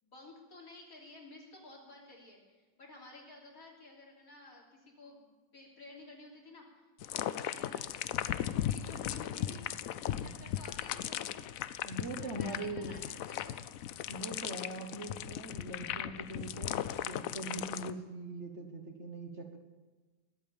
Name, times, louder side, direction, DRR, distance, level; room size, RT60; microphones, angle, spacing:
voice 1, 0.0-9.8 10.1-11.5 12.2-13.0 13.3-13.6, left 2 dB, 50° left, -2 dB, 3.6 m, -53 dB
sound 1, 7.0-17.9, left 11 dB, 70° left, 0.8 m, -37 dB
voice 2, 11.8-13.0 14.1-19.6, right 2 dB, 45° right, 3 dB, 1.5 m, -42 dB
21.0 x 8.4 x 7.1 m, 1.3 s
omnidirectional pair, 1.9 m